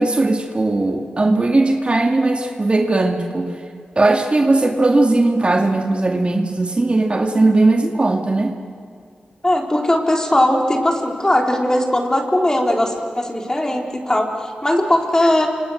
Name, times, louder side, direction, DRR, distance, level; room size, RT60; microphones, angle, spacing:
voice 1, 0.0-3.5 4.0-8.6, right 2 dB, 35° right, 3 dB, 2.2 m, -18 dB
voice 2, 9.4-15.5, left 1 dB, 20° left, 1 dB, 4.0 m, -19 dB
28.5 x 26.5 x 6.5 m, 2.2 s
cardioid pair, 65°, 3 cm